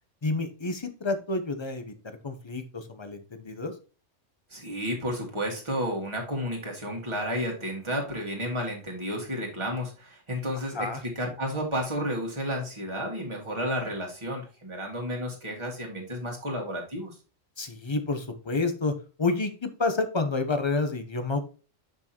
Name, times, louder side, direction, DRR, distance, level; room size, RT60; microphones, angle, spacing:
voice 1, 0.2-3.7 10.7-11.0 17.6-21.5, left 3 dB, 25° left, 8 dB, 0.7 m, -29 dB
voice 2, 4.5-10.9 11.2-17.1, equal, 25° right, -1 dB, 2.0 m, -32 dB
6.6 x 6.1 x 2.9 m, 0.34 s
omnidirectional pair, 1.3 m